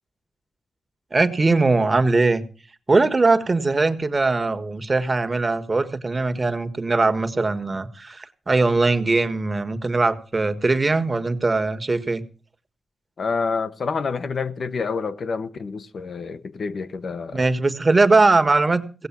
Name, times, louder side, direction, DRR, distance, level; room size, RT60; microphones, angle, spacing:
voice 1, 1.1-2.4 2.9-12.2 17.3-19.1, right 3 dB, 30° right, 1.4 m, -20 dB
voice 2, 13.2-17.5, left 5 dB, 65° left, 1.0 m, -28 dB
17.0 x 7.9 x 7.3 m
wide cardioid pair, 95°, 0 cm